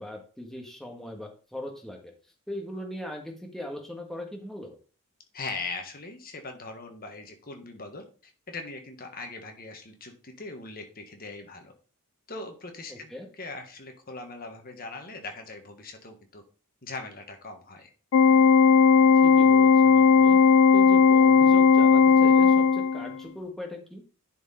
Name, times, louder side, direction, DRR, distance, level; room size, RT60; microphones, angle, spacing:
voice 1, 0.0-2.1 2.5-4.8 12.9-13.3 19.2-20.4 20.7-24.0, left 1 dB, ahead, 1 dB, 1.5 m, -39 dB
voice 2, 5.3-11.7 12.3-16.4 16.8-17.9, left 3 dB, 45° left, 4 dB, 1.5 m, -40 dB
Organ, 18.1-23.2, left 6 dB, 65° left, 0.4 m, -17 dB
11.0 x 4.6 x 4.2 m, 0.38 s
head